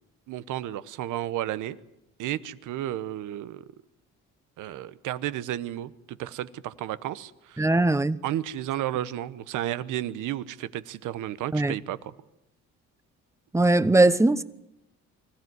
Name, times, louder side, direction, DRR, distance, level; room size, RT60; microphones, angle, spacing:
voice 1, 0.3-1.8 2.2-3.7 4.6-7.7 8.2-12.1, right 12 dB, 90° right, 1.0 m, -32 dB
voice 2, 7.6-8.2 11.5-11.7 13.5-14.4, right 2 dB, 10° right, 1.0 m, -20 dB
25.0 x 15.0 x 9.5 m
cardioid pair, 90°, 30 cm